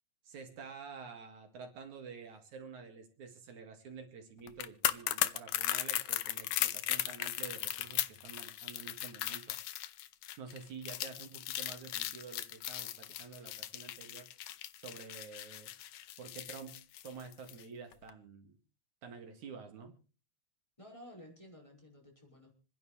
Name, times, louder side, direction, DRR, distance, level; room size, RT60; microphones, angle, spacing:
voice 1, 0.2-9.6 10.4-14.3 14.8-15.7 16.2-18.6 19.0-19.9, right 5 dB, 75° right, 4 dB, 3.4 m, -49 dB
sound 1, 4.5-17.6 17.9-18.1, left 13 dB, 80° left, 2.2 m, -37 dB
voice 2, 20.8-22.5, equal, 10° left, -1 dB, 5.0 m, -53 dB
27.0 x 11.0 x 3.2 m, 0.35 s
omnidirectional pair, 3.4 m